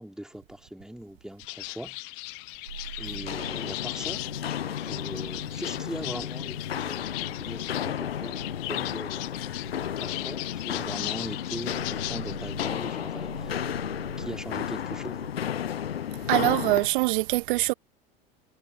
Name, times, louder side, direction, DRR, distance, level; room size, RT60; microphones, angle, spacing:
voice 1, 0.0-2.0 3.0-4.2 4.9-8.4 8.7-9.5 10.0-13.6 14.2-15.5, equal, ahead, 3.2 m, -40 dB
sound 1, 1.4-12.7, left 35 dB, 50° left, 0.9 m, -38 dB
sound 2, 2.7-15.3, right 7 dB, 80° right, 4.8 m, -46 dB
Walk footsteps, 3.1-16.9, left 9 dB, 85° left, 0.5 m, -33 dB
voice 2, 16.2-17.7, right 21 dB, 60° right, 1.0 m, -24 dB
figure-of-eight pair, 75°, 30 cm